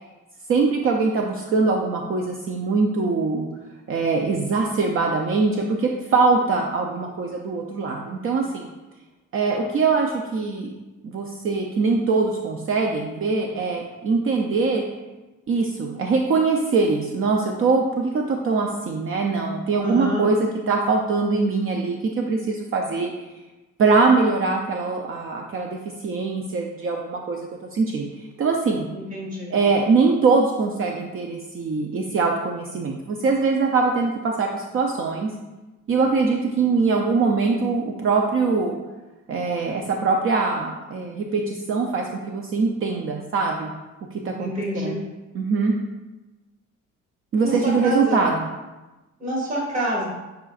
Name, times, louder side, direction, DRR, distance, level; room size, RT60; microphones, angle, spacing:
voice 1, 0.5-3.5 3.9-8.7 9.3-10.7 11.0-14.8 15.5-20.4 20.7-23.1 23.8-28.1 28.4-28.9 29.5-35.3 35.9-38.8 39.3-43.7 44.2-44.5 44.8-44.9 45.3-45.7 47.3-48.4, right 4 dB, 45° right, 1 dB, 0.6 m, -22 dB
voice 2, 19.8-20.3 28.9-29.5 44.4-45.0 47.4-48.2 49.2-50.0, equal, 25° right, -4 dB, 1.9 m, -27 dB
8.5 x 5.0 x 2.4 m, 1.1 s
cardioid pair, 140°, 30 cm